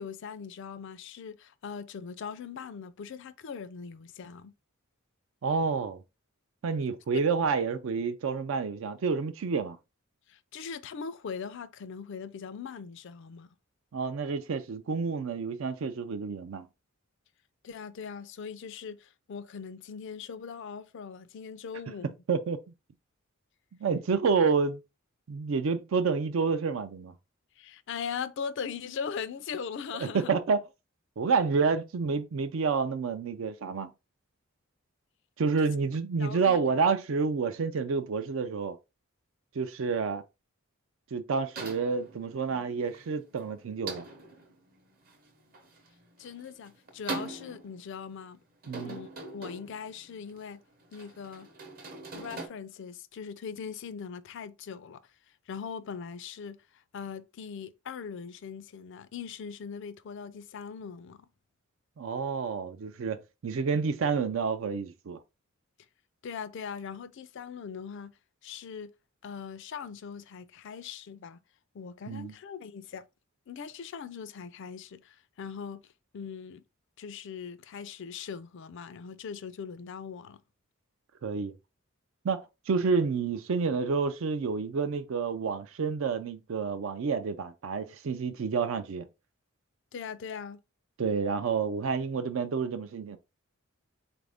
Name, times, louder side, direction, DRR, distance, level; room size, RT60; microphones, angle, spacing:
voice 1, 0.0-4.5 7.1-7.3 10.3-13.5 17.6-22.1 27.6-30.3 35.6-35.7 36.2-36.7 46.2-48.4 48.8-50.6 50.9-51.5 52.1-55.0 55.5-61.3 66.2-68.1 68.4-68.9 69.2-71.4 71.7-73.1 73.5-76.6 77.0-80.4 89.9-90.6, left 6 dB, 60° left, 0.4 m, -40 dB
voice 2, 5.4-6.0 6.6-9.8 13.9-16.7 22.3-22.6 23.8-24.8 25.3-27.1 30.0-30.6 31.2-33.9 35.4-38.8 39.6-40.2 41.1-44.1 48.7-49.0 62.0-65.2 72.1-72.3 81.2-81.5 82.2-89.1 91.0-93.2, right 5 dB, 65° right, 0.4 m, -29 dB
sound 1, 41.6-52.5, right 3 dB, 45° right, 0.8 m, -43 dB
4.1 x 2.5 x 3.4 m
head